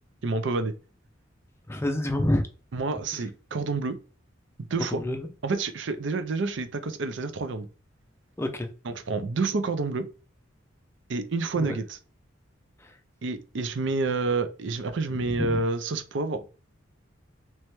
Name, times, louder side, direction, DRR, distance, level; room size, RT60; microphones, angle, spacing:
voice 1, 0.2-0.7 2.7-4.0 4.7-5.0 5.4-7.7 8.8-10.1 11.1-12.0 13.2-16.4, right 3 dB, 65° right, 0.5 m, -28 dB
voice 2, 1.7-2.4 4.9-5.3 8.4-8.7 11.7-11.8 12.8-12.9 15.2-15.6, left 1 dB, 15° left, 0.5 m, -27 dB
3.0 x 3.0 x 3.2 m
head